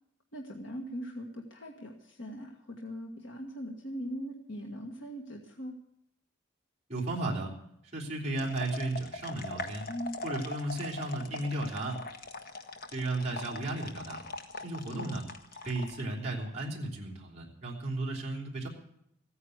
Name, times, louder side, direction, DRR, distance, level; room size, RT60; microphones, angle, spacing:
voice 1, 0.3-5.7 9.9-10.2 14.9-15.1, equal, 65° left, 1 dB, 1.8 m, -40 dB
voice 2, 6.9-7.5 7.9-9.9 10.2-12.0 12.9-14.2 14.6-15.2 15.6-18.7, right 2 dB, 30° right, -4 dB, 3.5 m, -34 dB
sound 1, 8.3-16.0, left 2 dB, 45° left, 1.4 m, -41 dB
15.5 x 9.7 x 8.1 m, 0.76 s
head